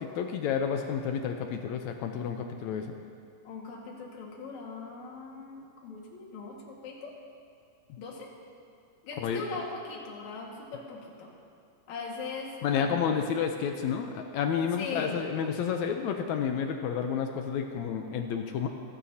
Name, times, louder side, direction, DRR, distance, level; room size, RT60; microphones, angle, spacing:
voice 1, 0.0-2.9 9.2-9.4 12.6-18.7, left 7 dB, 75° left, 4 dB, 1.7 m, -30 dB
voice 2, 3.4-7.2 8.0-8.3 9.0-11.3 11.9-13.2 14.7-15.1, left 4 dB, 60° left, -2 dB, 3.0 m, -40 dB
23.5 x 12.5 x 2.8 m, 2.5 s
omnidirectional pair, 4.0 m